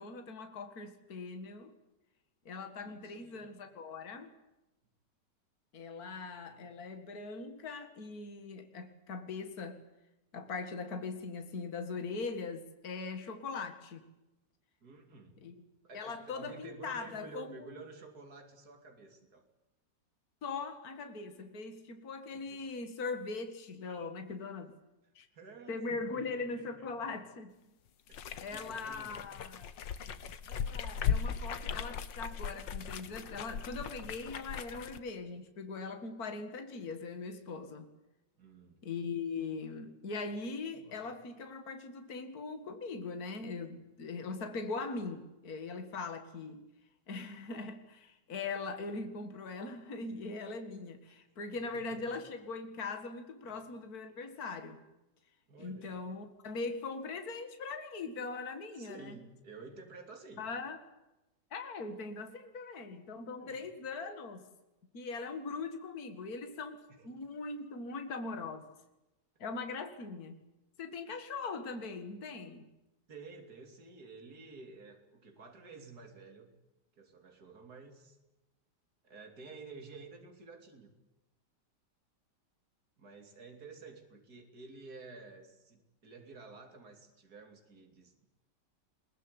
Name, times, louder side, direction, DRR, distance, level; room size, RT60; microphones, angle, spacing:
voice 1, 0.0-1.7 2.5-4.3 5.7-9.8 10.3-14.0 15.4-15.5 15.9-17.7 20.4-24.7 25.2-25.3 25.7-27.5 28.4-29.7 30.5-37.9 38.8-46.6 47.1-54.8 55.6-59.2 60.4-60.8 61.5-64.4 64.9-68.7 69.4-70.4 70.8-72.7, left 4 dB, 55° left, 7 dB, 2.4 m, -41 dB
voice 2, 2.8-3.5 6.1-6.5 14.8-15.4 15.8-19.5 22.5-22.6 25.3-27.2 28.1-29.2 38.4-38.8 40.7-41.1 51.1-51.2 51.5-52.1 53.5-53.6 55.5-55.9 58.8-60.5 63.4-63.6 66.9-67.2 73.1-76.5 77.0-78.2 79.0-80.9 83.0-88.3, right 4 dB, 55° right, 4 dB, 3.6 m, -52 dB
sound 1, 28.1-35.0, left 7 dB, 85° left, 1.9 m, -38 dB
22.0 x 20.5 x 9.7 m, 0.98 s
omnidirectional pair, 1.9 m